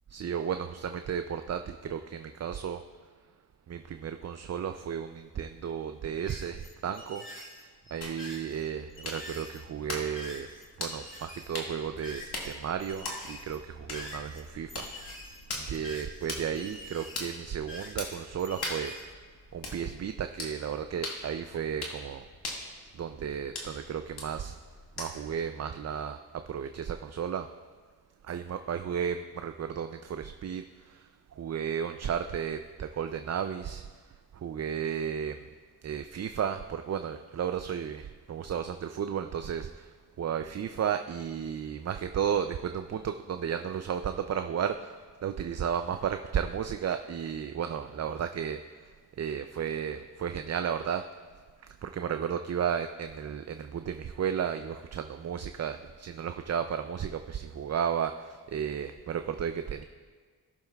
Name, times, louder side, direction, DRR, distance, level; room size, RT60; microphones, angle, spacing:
voice 1, 0.1-2.8 3.7-7.2 7.9-10.5 10.8-14.7 15.6-18.9 19.5-22.2 23.0-24.6 25.0-26.2 26.5-27.5 28.3-30.6 31.4-33.8 34.4-35.4 35.8-39.8 40.2-44.9 45.2-48.6 49.2-51.0 51.8-59.8, right 8 dB, 45° right, 8 dB, 0.4 m, -33 dB
sound 1, 6.3-12.5 12.8-19.0, left 1 dB, 30° left, 2.1 m, -46 dB
sound 2, 8.0-25.4, left 2 dB, 80° left, 1.9 m, -42 dB
19.5 x 6.8 x 2.3 m, 1.5 s
cardioid pair, 70°, 39 cm